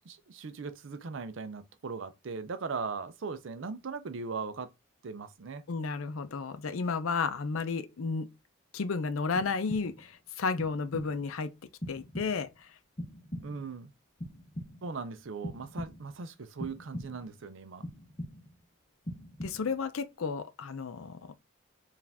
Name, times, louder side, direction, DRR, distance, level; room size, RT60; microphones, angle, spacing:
voice 1, 0.0-4.7 5.0-5.6 13.4-13.9 14.8-17.9, right 4 dB, 65° right, 0.5 m, -39 dB
voice 2, 5.7-8.3 8.7-11.5 11.9-12.5 19.4-21.4, left 4 dB, 75° left, 0.5 m, -32 dB
sound 1, 9.4-10.1 10.6-11.3 11.8-12.6 13.0-13.8 14.2-15.0 15.4-16.2 16.6-17.4 17.8-18.6 19.0-19.9, equal, 30° left, 0.8 m, -42 dB
4.7 x 2.5 x 3.4 m
head